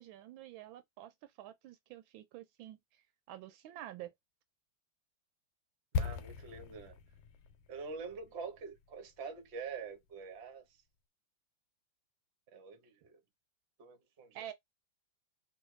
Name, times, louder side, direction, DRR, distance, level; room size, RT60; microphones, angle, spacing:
voice 1, 0.0-4.1 14.3-14.5, right 12 dB, 80° right, 1.3 m, -49 dB
sound 1, 5.9-9.9 10.1-10.3, left 5 dB, 90° left, 1.4 m, -40 dB
voice 2, 6.0-7.0 7.7-10.8 12.5-13.2 13.8-14.5, right 5 dB, 50° right, 0.8 m, -46 dB
3.2 x 2.6 x 3.1 m
omnidirectional pair, 2.2 m